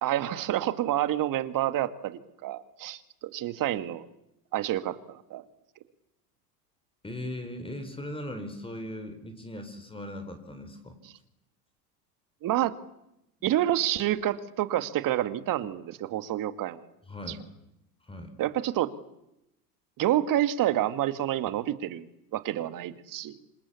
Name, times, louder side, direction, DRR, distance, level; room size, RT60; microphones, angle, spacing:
voice 1, 0.0-4.1 4.5-5.4 12.4-12.8 13.4-16.9 17.3-17.4 18.4-18.9 20.0-23.4, right 13 dB, 40° right, 12 dB, 2.2 m, -28 dB
voice 2, 7.0-11.0 17.1-17.4 18.0-18.4, left 1 dB, 10° left, 7 dB, 4.9 m, -39 dB
27.5 x 25.5 x 8.5 m, 0.86 s
hypercardioid pair, 90°, 48 cm